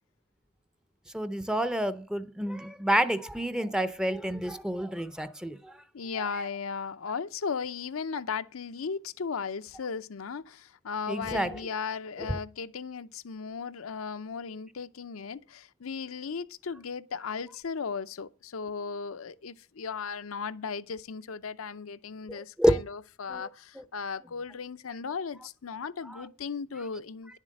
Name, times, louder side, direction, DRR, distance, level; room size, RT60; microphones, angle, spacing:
voice 1, 1.1-5.8 11.1-11.6 22.3-22.8 23.3-23.4, right 1 dB, 5° right, 0.5 m, -28 dB
voice 2, 5.9-27.4, left 5 dB, 80° left, 0.6 m, -36 dB
10.5 x 7.4 x 6.3 m
head